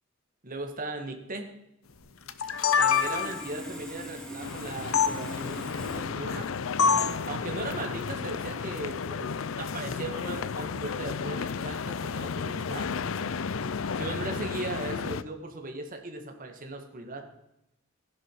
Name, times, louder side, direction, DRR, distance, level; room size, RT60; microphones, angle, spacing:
voice 1, 0.4-1.5 2.8-6.5 7.3-9.3 9.6-13.0 13.9-17.3, right 2 dB, 45° right, 5 dB, 2.1 m, -38 dB
sound 1, 2.3-3.5 4.9-5.1 6.8-7.2, left 6 dB, 90° left, 0.9 m, -24 dB
Sawing, 2.4-6.0, equal, 5° left, 2.8 m, -41 dB
sound 2, 4.4-15.2, left 5 dB, 75° left, 0.5 m, -33 dB
15.0 x 11.0 x 4.9 m, 0.86 s
head